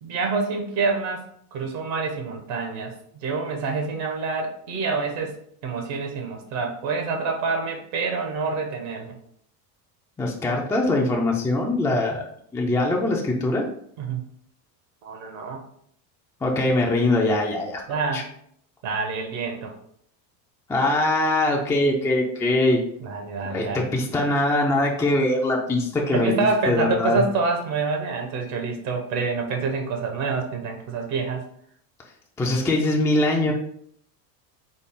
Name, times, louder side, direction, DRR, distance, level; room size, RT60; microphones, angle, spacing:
voice 1, 0.0-1.3 1.5-9.2 14.0-14.2 15.0-15.6 17.9-18.3 18.8-19.7 23.0-23.9 26.1-31.4, right 4 dB, 65° right, 3 dB, 1.0 m, -27 dB
voice 2, 10.2-12.2 12.5-13.6 16.4-17.8 18.1-18.2 20.7-22.8 23.5-27.2 32.4-33.5, left 2 dB, 5° left, -1 dB, 0.3 m, -22 dB
4.0 x 2.0 x 3.5 m, 0.67 s
supercardioid pair, 90°, 50 cm